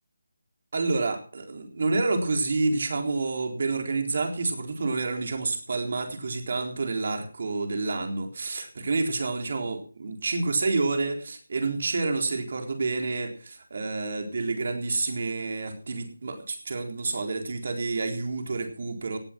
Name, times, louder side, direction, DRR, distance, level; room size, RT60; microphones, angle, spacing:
voice 1, 0.7-19.2, right 3 dB, 55° right, 4 dB, 3.9 m, -29 dB
18.0 x 7.6 x 6.1 m, 0.40 s
figure-of-eight pair, 160°, 0 cm